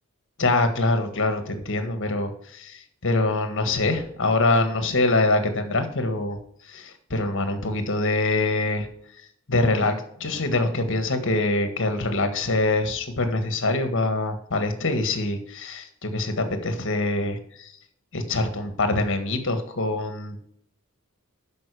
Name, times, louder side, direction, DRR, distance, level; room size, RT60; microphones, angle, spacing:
voice 1, 0.4-6.4 6.6-8.9 9.5-17.7 18.1-20.5, left 2 dB, 60° left, 7 dB, 1.7 m, -24 dB
12.0 x 5.4 x 4.9 m, 0.67 s
head